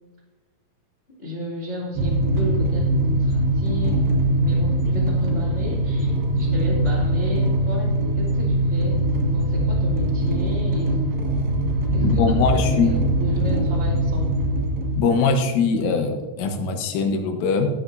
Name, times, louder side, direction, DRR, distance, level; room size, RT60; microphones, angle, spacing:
voice 1, 1.2-4.1 4.4-9.0 9.3-11.0 11.9-14.3, left 1 dB, 35° left, -6 dB, 0.9 m, -33 dB
sound 1, 2.0-15.0, right 1 dB, 65° right, 3.0 m, -22 dB
voice 2, 12.0-12.9 15.0-17.7, left 4 dB, 90° left, 5 dB, 3.7 m, -21 dB
16.0 x 9.4 x 2.7 m, 1.3 s
omnidirectional pair, 5.5 m